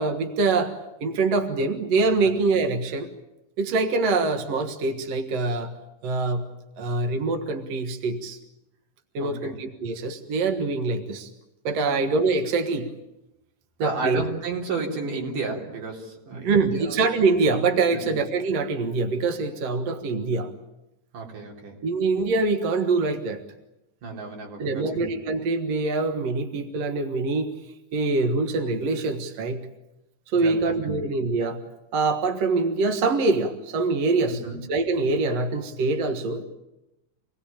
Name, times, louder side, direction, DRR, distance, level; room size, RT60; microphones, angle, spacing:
voice 1, 0.0-3.1 3.6-5.7 6.0-8.4 9.1-11.3 11.6-12.9 13.8-14.2 16.3-20.5 21.8-23.4 24.6-27.5 27.9-29.7 30.3-31.6 31.9-34.4 34.7-36.4, right 3 dB, 55° right, 5 dB, 2.4 m, -24 dB
voice 2, 9.2-9.5 11.9-12.0 13.8-17.0 17.9-18.1 21.1-21.8 24.0-25.0 30.3-31.0 34.4-34.6, right 4 dB, 75° right, 0 dB, 5.3 m, -32 dB
27.5 x 19.0 x 8.8 m, 0.93 s
omnidirectional pair, 3.8 m